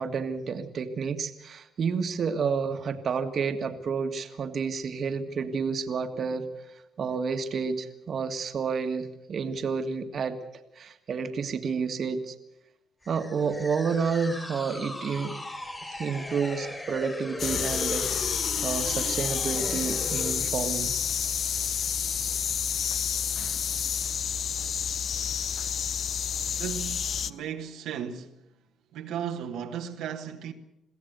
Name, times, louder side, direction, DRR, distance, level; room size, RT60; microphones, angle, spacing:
voice 1, 0.0-6.5 7.0-10.4 10.8-12.4 13.1-15.4 15.8-18.1 18.6-20.9, right 5 dB, 55° right, 1.7 m, -30 dB
sound 1, 13.0-20.5, left 1 dB, 20° left, 4.9 m, -38 dB
sound 2, 17.4-27.3, left 7 dB, 60° left, 0.7 m, -29 dB
voice 2, 26.5-28.3 28.9-30.5, right 8 dB, 85° right, 1.5 m, -35 dB
22.5 x 15.5 x 8.0 m
cardioid pair, 90°, 0 cm